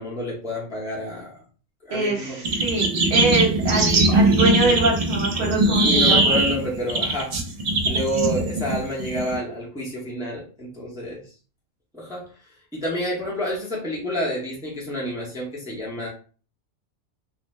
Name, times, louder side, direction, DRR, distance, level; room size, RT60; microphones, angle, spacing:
voice 1, 0.0-1.4 1.8-2.4 5.8-7.3 7.8-11.2 11.9-12.3 12.7-16.1, equal, 5° right, -4 dB, 0.6 m, -29 dB
voice 2, 1.9-6.4, right 2 dB, 50° right, -4 dB, 0.8 m, -24 dB
sound 1, 2.4-9.4, right 2 dB, 70° right, 0.3 m, -20 dB
2.5 x 2.1 x 3.1 m, 0.39 s
omnidirectional pair, 1.3 m